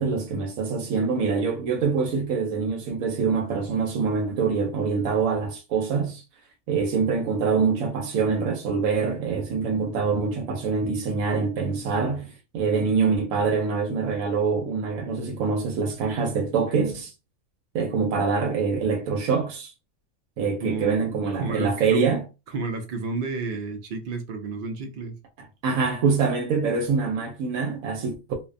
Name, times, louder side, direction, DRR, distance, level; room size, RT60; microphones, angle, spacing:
voice 1, 0.0-6.2 6.7-17.1 17.7-19.7 20.4-22.2 25.6-28.1, right 5 dB, 85° right, 1.0 m, -25 dB
voice 2, 20.6-21.1 21.4-22.1 22.5-25.2, right 3 dB, 65° right, 0.5 m, -31 dB
2.5 x 2.1 x 2.5 m
omnidirectional pair, 1.4 m